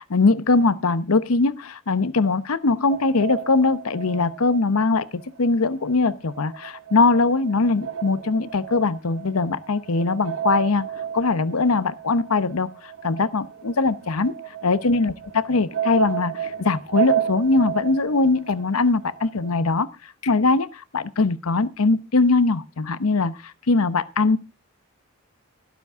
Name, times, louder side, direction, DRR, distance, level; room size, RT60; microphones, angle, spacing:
voice 1, 0.1-10.9 11.1-14.3 14.6-24.4, left 3 dB, 85° left, 0.9 m, -21 dB
sound 1, 2.9-5.5 5.7-19.6, right 9 dB, 65° right, 1.0 m, -32 dB
12.5 x 12.0 x 3.5 m
head